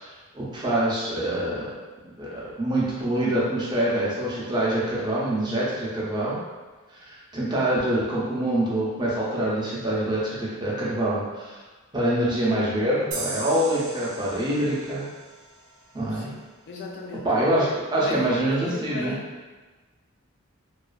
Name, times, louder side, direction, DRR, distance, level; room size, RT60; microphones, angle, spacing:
voice 1, 0.0-1.7 2.2-6.4 6.9-11.6 11.9-15.1 15.9-16.3 17.2-19.2, right 1 dB, 20° right, -7 dB, 0.5 m, -25 dB
sound 1, 13.1-16.4, right 3 dB, 80° right, 0.5 m, -38 dB
voice 2, 16.1-17.3 18.0-19.3, left 3 dB, 50° left, -1 dB, 0.4 m, -37 dB
2.4 x 2.3 x 2.3 m, 1.3 s
head